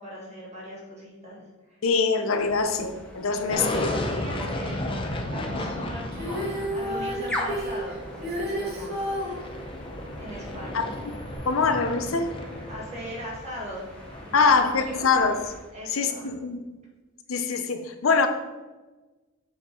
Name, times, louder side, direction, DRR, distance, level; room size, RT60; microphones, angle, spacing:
voice 1, 0.0-1.8 3.3-5.0 5.3-9.0 10.2-10.9 12.7-14.5 14.9-15.1 15.7-16.3, equal, 35° right, 2.2 m, -39 dB
voice 2, 1.8-3.9 10.7-10.8 11.5-12.3 14.3-15.4 15.9-16.6 17.3-18.3, left 4 dB, 85° left, 0.7 m, -23 dB
sound 1, 2.3-15.7, equal, 5° left, 1.0 m, -41 dB
sound 2, 3.5-14.7, left 1 dB, 25° left, 0.7 m, -34 dB
Female singing, 6.1-9.4 11.3-11.4, equal, 50° right, 1.9 m, -31 dB
7.2 x 4.6 x 3.8 m
head